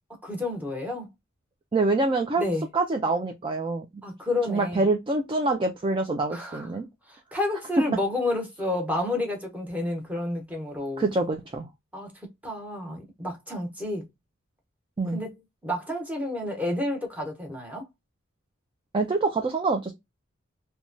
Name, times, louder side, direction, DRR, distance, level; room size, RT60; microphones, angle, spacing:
voice 1, 0.2-1.1 2.4-2.6 4.0-4.8 6.3-6.8 7.1-11.0 11.9-12.1 12.4-14.1 15.1-15.3 15.6-17.8, left 2 dB, 10° right, 1.0 m, -30 dB
voice 2, 1.7-2.5 2.7-3.9 4.5-6.9 11.0-11.7 15.0-15.2 18.9-19.9, right 3 dB, 25° right, 0.4 m, -25 dB
3.1 x 2.2 x 2.5 m
head